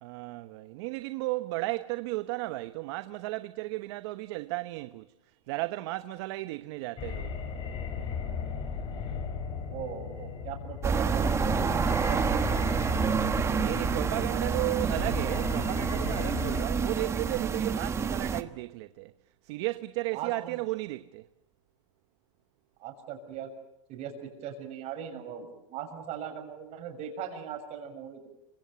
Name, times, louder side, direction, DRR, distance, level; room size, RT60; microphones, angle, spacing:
voice 1, 0.0-7.3 13.6-19.1 19.4-21.2, right 20 dB, 55° right, 1.0 m, -34 dB
sound 1, 7.0-16.6, left 6 dB, 30° left, 4.7 m, -36 dB
voice 2, 9.7-11.3 11.9-12.7 14.3-14.4 20.1-20.6 22.8-23.5 23.9-28.3, right 8 dB, 40° right, 6.9 m, -39 dB
sound 2, 10.8-18.4, right 6 dB, 15° right, 1.3 m, -28 dB
27.5 x 25.5 x 7.0 m
supercardioid pair, 140°, 17 cm